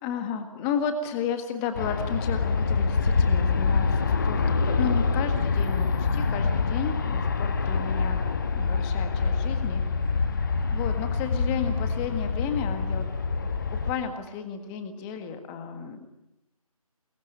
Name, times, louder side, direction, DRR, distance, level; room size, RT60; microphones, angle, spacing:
voice 1, 0.0-8.2 8.5-9.8 10.7-13.0 13.7-16.1, left 7 dB, 10° left, 8 dB, 1.7 m, -33 dB
Aircraft, 1.7-13.9, left 4 dB, 35° left, 1.6 m, -25 dB
27.5 x 22.5 x 9.6 m, 0.90 s
figure-of-eight pair, 160°, 19 cm